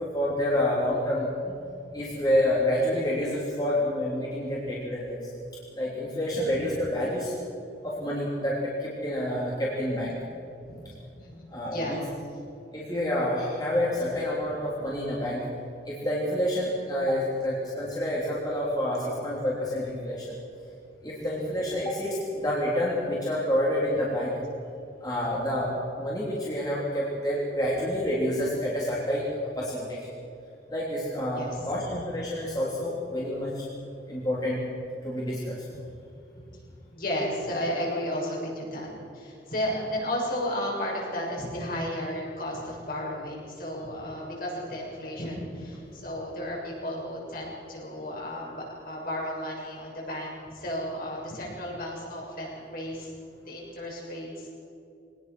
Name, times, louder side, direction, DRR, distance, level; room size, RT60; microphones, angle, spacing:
voice 1, 0.1-1.5 1.9-5.2 5.7-7.3 7.8-10.2 11.5-12.0 12.7-15.4 15.8-20.3 21.0-24.3 25.0-29.3 29.5-30.0 30.7-33.6 34.1-34.6 35.0-35.6, left 1 dB, 20° left, -6 dB, 3.3 m, -28 dB
voice 2, 11.2-12.0 21.2-21.3 31.4-31.8 35.7-35.8 36.3-36.4 36.9-38.9 39.1-53.1 53.5-54.5, equal, 50° left, -3 dB, 6.7 m, -33 dB
23.0 x 19.0 x 6.2 m, 2.6 s
head